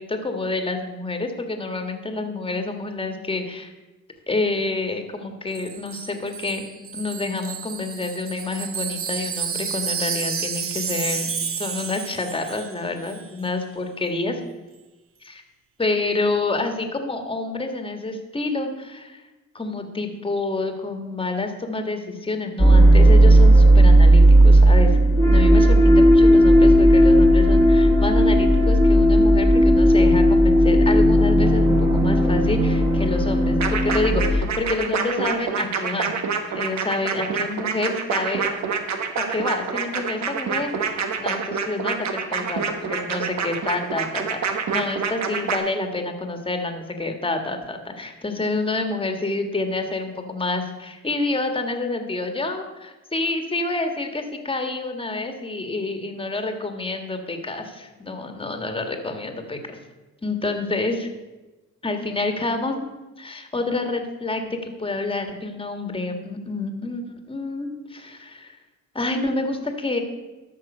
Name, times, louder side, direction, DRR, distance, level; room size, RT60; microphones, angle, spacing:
voice 1, 0.0-3.7 4.3-6.6 6.9-11.3 11.6-14.4 15.2-15.4 15.8-19.2 19.5-25.0 25.3-36.1 36.5-38.5 39.2-59.8 60.2-61.1 61.8-62.8 63.2-68.6 68.9-70.0, left 2 dB, 20° left, 5 dB, 1.5 m, -28 dB
Wind chime, 5.5-12.8 13.0-13.2, right 7 dB, 45° right, 1.1 m, -30 dB
sound 1, 22.6-34.4, right 1 dB, 20° right, 1.8 m, -14 dB
sound 2, 33.6-45.6, right 6 dB, 65° right, 1.3 m, -26 dB
13.0 x 6.1 x 5.4 m, 1.1 s
cardioid pair, 90°, 30 cm